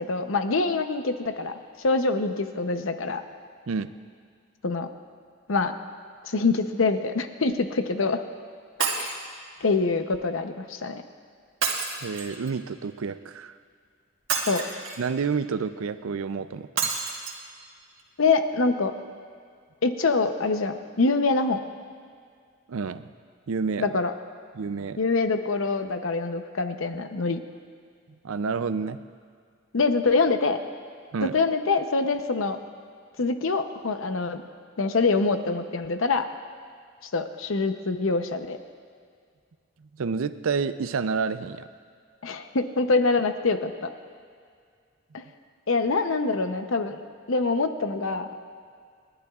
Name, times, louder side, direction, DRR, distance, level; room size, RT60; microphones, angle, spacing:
voice 1, 0.0-3.2 4.6-4.9 5.5-5.7 6.2-8.2 8.9-9.1 9.6-11.0 14.5-14.6 18.2-18.9 19.8-21.6 23.8-24.1 25.0-27.4 29.7-30.6 31.2-32.6 33.2-34.4 34.8-36.3 37.1-38.6 42.2-43.9 45.1-45.2 45.7-47.0 47.3-48.3, left 3 dB, 75° left, 8 dB, 0.7 m, -25 dB
Shatter, 8.8-9.2 11.6-12.5 14.3-15.1 16.8-17.3 18.0-18.1 18.3-18.4, right 5 dB, 70° right, 1.6 m, -28 dB
voice 2, 12.0-13.5 15.0-16.9 22.7-23.0 23.5-23.9 24.6-25.0 28.2-29.0 31.1-31.3 40.0-41.6, right 5 dB, 85° right, 12 dB, 0.5 m, -29 dB
29.5 x 11.0 x 2.4 m, 2.1 s
head